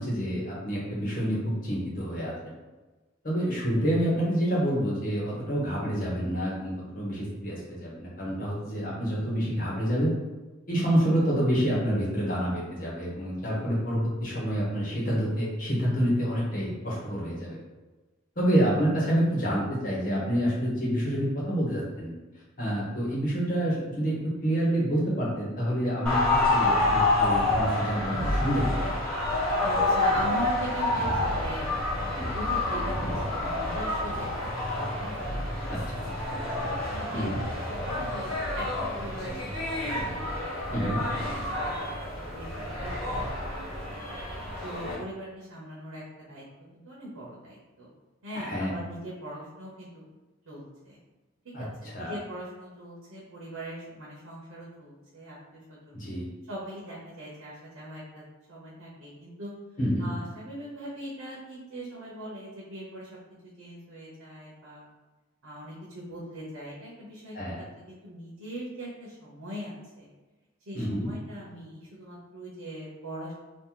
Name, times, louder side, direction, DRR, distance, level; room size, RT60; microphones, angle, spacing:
voice 1, 0.0-2.3 3.2-10.1 10.7-17.6 18.4-22.1 22.6-24.1 24.4-26.2 26.5-29.0 32.1-32.3 35.7-36.1 37.1-37.4 40.7-41.0 44.8-45.0 48.3-48.8 51.5-51.6 51.9-52.2 55.9-56.3 59.8-60.1 67.3-67.6 70.7-71.1, equal, 40° left, -6 dB, 1.1 m, -28 dB
sound 1, 26.1-45.0, left 2 dB, 5° left, 1.5 m, -28 dB
voice 2, 29.6-31.6 31.9-34.3 34.5-36.0 36.9-37.3 37.7-39.4 39.7-39.8 40.0-40.9 41.3-41.7 42.3-44.0 44.6-46.4 46.7-47.9 48.2-50.0 50.5-51.0 51.6-51.7 52.0-56.0 56.5-58.2 58.5-59.5 60.0-63.1 63.6-64.9 65.4-70.1 70.7-73.3, equal, 80° right, -6 dB, 1.0 m, -41 dB
2.9 x 2.5 x 3.8 m, 1.2 s
head